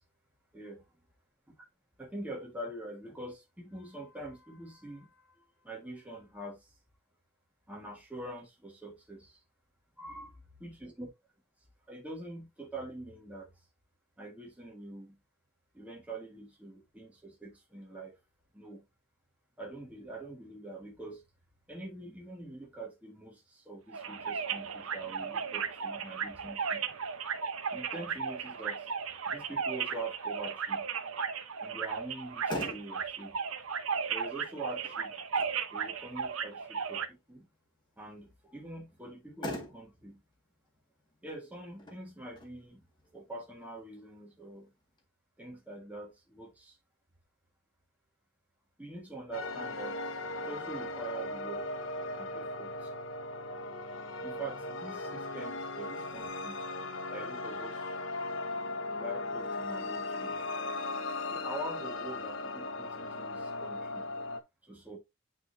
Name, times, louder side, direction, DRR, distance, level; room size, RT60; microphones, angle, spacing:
voice 1, 2.0-6.7 7.7-9.4 10.0-10.3 10.6-11.1 11.9-13.5 14.2-15.2 15.7-18.1 18.5-18.8 19.6-21.2 21.7-27.1 27.7-28.9 29.3-30.8 31.6-33.4 34.1-35.1 35.7-37.5 38.0-40.2 41.2-42.8 43.1-44.7 45.4-46.8 48.8-50.0 50.3-51.8 52.2-52.9 54.2-56.7 57.1-57.9 59.0-60.4 61.3-64.1 64.6-65.0, right 2 dB, 5° right, 1.5 m, -44 dB
sound 1, 23.9-37.1, right 6 dB, 85° right, 0.8 m, -35 dB
Motor vehicle (road), 32.1-45.1, left 1 dB, 20° left, 1.8 m, -47 dB
sound 2, 49.3-64.4, left 2 dB, 70° left, 0.8 m, -37 dB
9.2 x 3.8 x 2.6 m
head